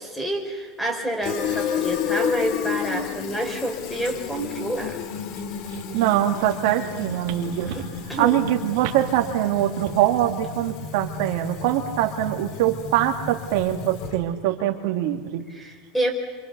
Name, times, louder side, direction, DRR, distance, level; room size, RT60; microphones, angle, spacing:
voice 1, 0.0-5.0 7.7-8.4 15.5-16.1, right 1 dB, 5° left, 3 dB, 4.5 m, -28 dB
Fill (with liquid), 1.2-14.3, left 7 dB, 50° left, 2.1 m, -32 dB
voice 2, 5.9-7.8 8.2-15.5, right 12 dB, 65° right, 4 dB, 2.3 m, -23 dB
26.5 x 26.0 x 6.9 m, 1.5 s
supercardioid pair, 135°, 0 cm